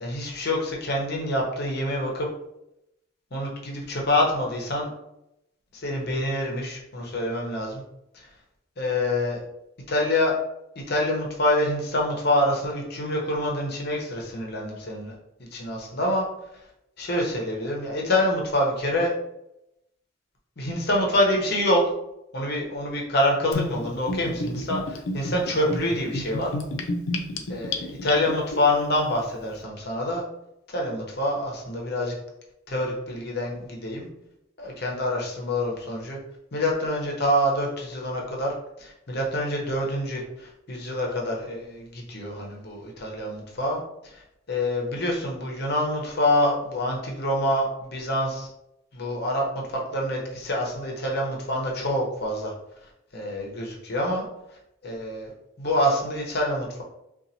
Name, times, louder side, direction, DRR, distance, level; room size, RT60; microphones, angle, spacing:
voice 1, 0.0-2.3 3.3-4.9 5.7-7.8 8.8-9.4 9.9-10.3 10.9-15.1 15.5-16.2 17.0-19.1 20.6-21.8 22.3-26.5 27.5-30.2 30.7-32.1 32.7-34.1 34.6-36.2 36.5-43.8 44.1-44.2 44.5-48.5 48.9-52.5 53.1-54.2 54.8-55.3 55.6-56.8, left 1 dB, 55° left, -1 dB, 0.9 m, -26 dB
Gurgling / Bathtub (filling or washing), 23.5-28.6, left 2 dB, 80° left, 0.5 m, -30 dB
3.9 x 2.5 x 2.8 m, 0.83 s
head